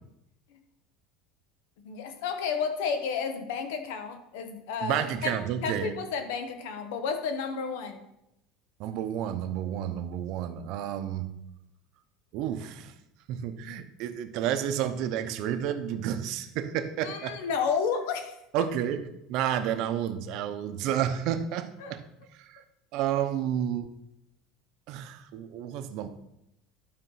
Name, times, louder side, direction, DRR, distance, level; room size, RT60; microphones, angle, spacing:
voice 1, 1.8-8.0 17.0-18.7 21.8-21.9, left 6 dB, 80° left, 7 dB, 1.3 m, -32 dB
voice 2, 4.8-5.9 8.8-11.3 12.3-12.9 13.3-17.4 18.5-19.0 19.3-22.0 22.5-22.6 22.9-23.9 24.9-26.1, right 10 dB, 50° right, 9 dB, 0.8 m, -30 dB
12.0 x 4.4 x 5.7 m, 0.85 s
cardioid pair, 165°, 0 cm